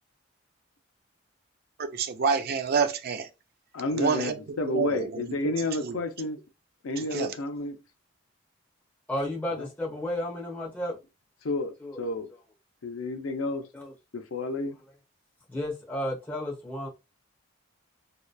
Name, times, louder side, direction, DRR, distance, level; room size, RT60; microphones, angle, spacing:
voice 1, 1.8-3.3 3.9-6.0 7.0-7.3, right 5 dB, 50° right, 0.4 m, -29 dB
voice 2, 3.7-6.4 6.8-7.8 11.4-12.3 12.8-13.7 14.1-14.8, left 2 dB, 85° left, 0.5 m, -31 dB
voice 3, 9.1-11.0 11.8-12.0 13.7-13.9 15.5-16.9, left 1 dB, 10° left, 1.0 m, -32 dB
2.8 x 2.1 x 2.2 m
head